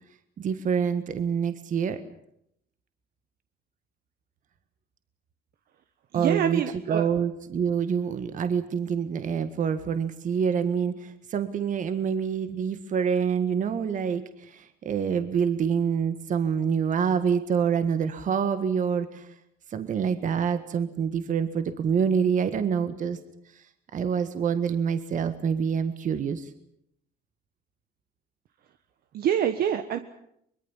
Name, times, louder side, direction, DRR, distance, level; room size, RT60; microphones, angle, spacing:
voice 1, 0.4-2.0 6.1-6.6 6.9-19.3 19.7-23.2 23.9-26.5, right 7 dB, 50° right, 10 dB, 1.7 m, -26 dB
voice 2, 6.1-7.1 29.1-30.0, right 9 dB, 65° right, 8 dB, 1.4 m, -25 dB
24.0 x 22.5 x 7.3 m, 0.73 s
cardioid pair, 110°, 17 cm